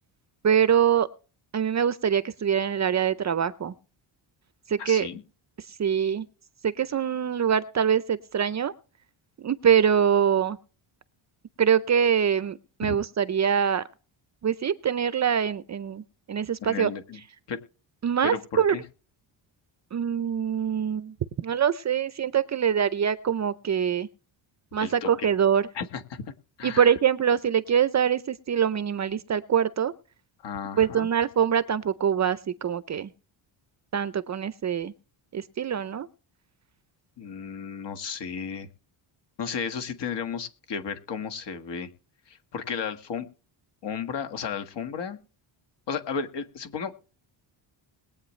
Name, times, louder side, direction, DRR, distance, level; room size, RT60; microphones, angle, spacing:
voice 1, 0.4-1.1 1.5-3.8 4.7-5.1 5.7-6.3 6.6-8.7 9.4-10.6 11.6-13.8 14.4-16.9 18.0-18.8 19.9-24.1 24.7-25.7 26.6-29.9 30.7-33.1 33.9-34.9 35.3-36.1, right 8 dB, 35° right, 15 dB, 0.6 m, -24 dB
voice 2, 4.8-5.2 12.8-12.9 16.6-17.2 17.5-17.6 18.2-18.8 24.8-25.3 25.8-26.2 26.6-26.9 30.4-31.1 37.2-38.7 39.4-41.9 42.3-43.3 43.8-45.2 45.9-46.9, left 6 dB, 55° left, 8 dB, 1.7 m, -33 dB
21.0 x 8.6 x 3.2 m, 0.36 s
cardioid pair, 135°, 49 cm